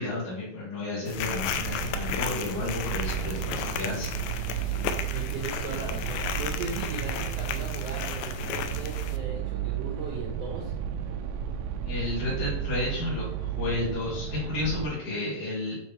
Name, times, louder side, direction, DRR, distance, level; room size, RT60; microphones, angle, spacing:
voice 1, 0.0-4.6 11.8-15.8, left 2 dB, 60° left, -8 dB, 3.6 m, -32 dB
sound 1, 1.1-9.2, left 9 dB, 85° left, 1.7 m, -35 dB
sound 2, 1.2-14.9, right 9 dB, 85° right, 2.3 m, -33 dB
voice 2, 4.7-10.7, right 4 dB, 70° right, 0 dB, 1.6 m, -38 dB
7.8 x 3.5 x 4.3 m, 0.79 s
omnidirectional pair, 4.0 m